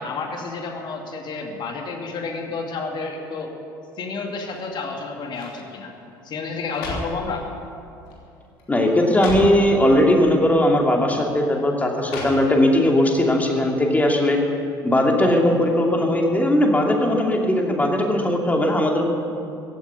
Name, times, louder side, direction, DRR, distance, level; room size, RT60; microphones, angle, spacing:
voice 1, 0.0-3.5 4.0-5.9 6.2-7.5, left 4 dB, 40° left, 2 dB, 2.5 m, -30 dB
sound 1, 4.4-4.9 5.3-5.6 6.4-7.3 8.1-8.3 8.6-8.7 9.1-9.6 10.6-10.7 12.0-12.8 13.2-13.3, left 2 dB, 60° left, 3.1 m, -33 dB
voice 2, 8.7-14.4 14.8-19.0, left 1 dB, 15° left, 1 dB, 2.6 m, -19 dB
15.5 x 9.7 x 9.6 m, 2.6 s
figure-of-eight pair, 60°, 11 cm